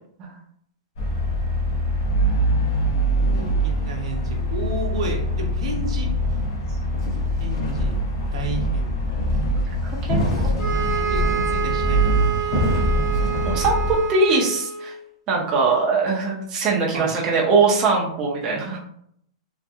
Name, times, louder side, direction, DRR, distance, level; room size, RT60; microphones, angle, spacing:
sound 1, 1.0-13.9, equal, 55° left, 0.6 m, -23 dB
voice 1, 3.1-6.1 7.4-7.9 8.3-9.0 10.2-12.4 16.9-17.1, right 3 dB, 75° right, 2 dB, 0.7 m, -32 dB
voice 2, 9.5-10.6 13.4-14.9 15.3-18.8, right 4 dB, 20° right, -3 dB, 0.5 m, -22 dB
sound 2, 10.6-15.0, right 9 dB, 30° left, 0.9 m, -27 dB
2.7 x 2.4 x 2.3 m, 0.69 s
supercardioid pair, 165°, 3 cm